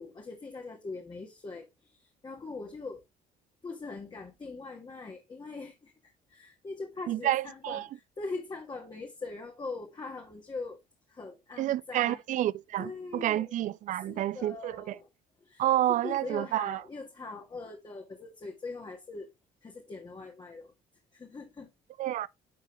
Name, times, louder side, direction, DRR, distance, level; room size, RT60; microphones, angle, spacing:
voice 1, 0.0-3.0 3.6-10.8 11.1-12.2 12.8-13.5 13.9-15.1 15.4-15.6 15.9-19.3 19.6-20.7 21.1-21.7, left 3 dB, 25° left, 1.7 m, -42 dB
voice 2, 7.1-7.9 11.6-15.0 15.6-16.8 22.0-22.3, right 13 dB, 50° right, 0.4 m, -29 dB
9.9 x 4.6 x 3.1 m
cardioid pair, 110°, 17 cm